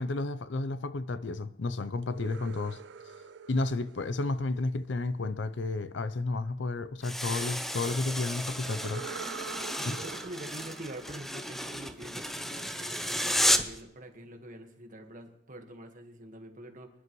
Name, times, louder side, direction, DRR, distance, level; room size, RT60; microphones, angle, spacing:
voice 1, 0.0-2.8 3.5-9.1, left 3 dB, 70° left, 14 dB, 0.6 m, -32 dB
sound 1, 2.0-5.0 8.6-12.4, right 6 dB, 65° right, 0.4 m, -45 dB
sound 2, 7.0-13.8, equal, ahead, 0.6 m, -32 dB
voice 2, 9.8-16.9, right 1 dB, 45° right, 4 dB, 1.6 m, -45 dB
25.5 x 11.0 x 3.1 m, 0.84 s
head